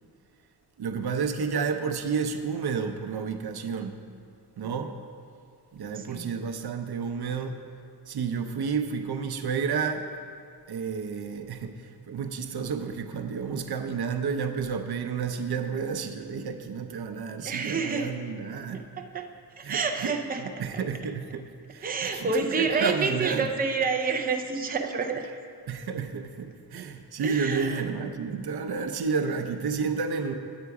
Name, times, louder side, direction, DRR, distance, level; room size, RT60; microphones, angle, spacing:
voice 1, 0.8-4.0 4.6-4.9 5.7-7.6 8.1-10.1 10.7-18.8 19.6-23.5 25.7-30.3, right 5 dB, 70° right, 7 dB, 0.7 m, -31 dB
voice 2, 5.9-6.3 17.4-18.1 19.0-19.3 19.6-20.5 21.8-25.2 26.7-26.9 27.2-27.8, right 4 dB, 25° right, 4 dB, 0.5 m, -28 dB
9.6 x 8.1 x 4.8 m, 2.3 s
wide cardioid pair, 120°, 39 cm